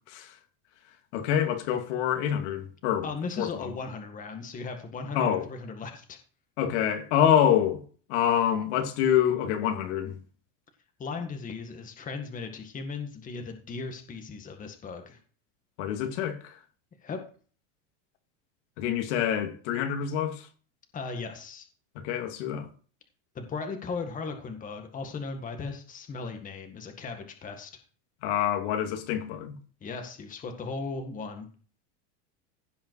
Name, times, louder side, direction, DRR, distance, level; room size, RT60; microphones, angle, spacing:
voice 1, 1.1-3.1 3.4-3.7 5.1-5.5 6.6-7.8 8.1-10.2 15.8-16.6 18.8-20.5 21.9-22.7 28.2-29.6, left 9 dB, 70° left, 2.5 m, -26 dB
voice 2, 3.0-6.2 11.0-15.2 17.0-17.2 20.9-21.7 23.4-27.7 29.8-31.5, left 4 dB, 20° left, 1.8 m, -37 dB
16.0 x 5.5 x 4.7 m
supercardioid pair, 145°, 37 cm